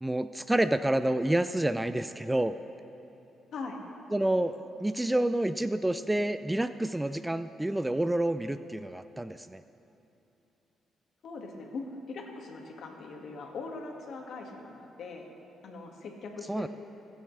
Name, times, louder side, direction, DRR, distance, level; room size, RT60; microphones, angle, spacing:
voice 1, 0.0-2.6 4.1-9.6 16.5-16.7, right 1 dB, 10° right, 11 dB, 0.4 m, -28 dB
voice 2, 3.5-3.8 11.2-15.3 15.6-16.7, left 3 dB, 65° left, 1 dB, 2.0 m, -41 dB
27.0 x 9.2 x 3.3 m, 3.0 s
cardioid pair, 90°, 0 cm